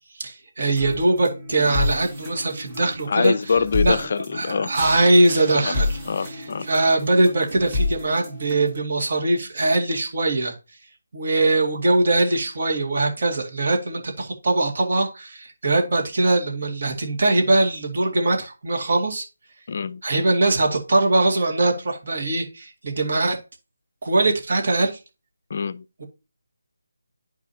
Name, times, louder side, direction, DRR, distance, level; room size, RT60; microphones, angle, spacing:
voice 1, 0.1-3.3 3.8-4.1 4.3-10.6 11.1-19.3 20.0-23.4 24.0-25.0 26.0-26.1, right 2 dB, 45° right, 2.1 m, -21 dB
sound 1, 0.8-8.8, left 2 dB, 10° right, 1.6 m, -30 dB
voice 2, 3.1-4.7 5.6-5.7 6.1-6.7 19.7-20.0 25.5-25.8, left 5 dB, 40° left, 0.5 m, -24 dB
10.5 x 4.9 x 2.8 m
figure-of-eight pair, 175°, 0 cm